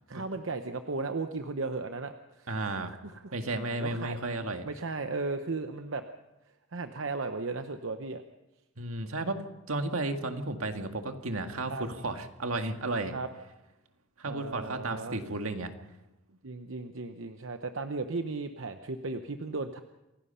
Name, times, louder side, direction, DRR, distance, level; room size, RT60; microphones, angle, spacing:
voice 1, 0.1-2.5 2.8-3.3 3.8-4.2 4.6-6.0 6.7-8.2 11.7-11.9 13.1-13.3 14.3-15.2 16.4-19.8, right 3 dB, 70° right, 8 dB, 0.8 m, -35 dB
voice 2, 2.5-2.9 3.3-4.7 8.8-9.4 9.7-13.1 14.2-15.7, right 2 dB, 90° right, 6 dB, 1.9 m, -33 dB
27.5 x 17.0 x 5.6 m, 0.95 s
head